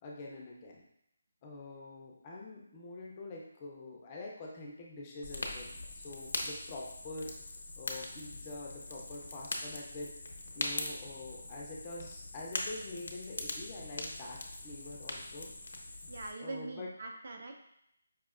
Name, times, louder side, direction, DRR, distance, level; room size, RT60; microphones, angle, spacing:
voice 1, 0.0-0.8 1.4-7.3 7.8-10.1 10.5-15.5 16.4-16.9, left 2 dB, 15° left, -2 dB, 0.4 m, -45 dB
Fire, 5.2-16.3, left 2 dB, 70° left, 0.6 m, -41 dB
voice 2, 16.1-17.5, right 3 dB, 45° right, 3 dB, 0.4 m, -43 dB
5.0 x 2.5 x 2.4 m, 0.77 s
hypercardioid pair, 175°, 0 cm